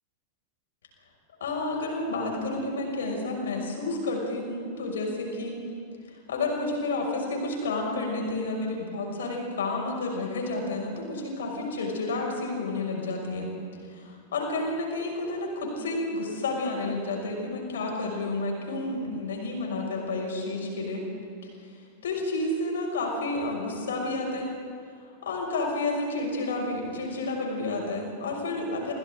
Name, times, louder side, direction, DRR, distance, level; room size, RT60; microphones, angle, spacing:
voice 1, 1.4-5.6 6.3-13.5 13.9-21.0 21.6-21.7 22.0-24.5 25.2-28.9, left 2 dB, 65° left, 0 dB, 6.4 m, -30 dB
29.0 x 28.0 x 3.9 m, 2.4 s
figure-of-eight pair, 90°, 0 cm